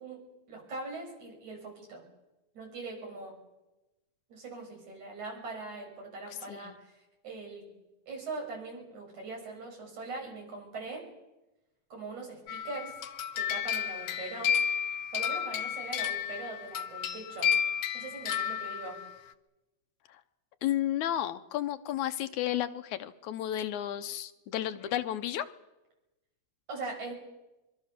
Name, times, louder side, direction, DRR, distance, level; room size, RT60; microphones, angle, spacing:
voice 1, 0.0-2.0 2.5-3.3 4.3-6.9 7.2-7.7 8.1-11.1 11.9-12.9 13.3-14.5 15.1-17.5 17.9-19.0 26.7-27.1, right 3 dB, 80° right, 0 dB, 7.7 m, -41 dB
sound 1, 12.5-19.1, left 8 dB, 65° left, 1.8 m, -32 dB
voice 2, 20.6-25.5, left 12 dB, 85° left, 10 dB, 2.4 m, -32 dB
23.5 x 23.0 x 6.8 m, 1.0 s
omnidirectional pair, 3.3 m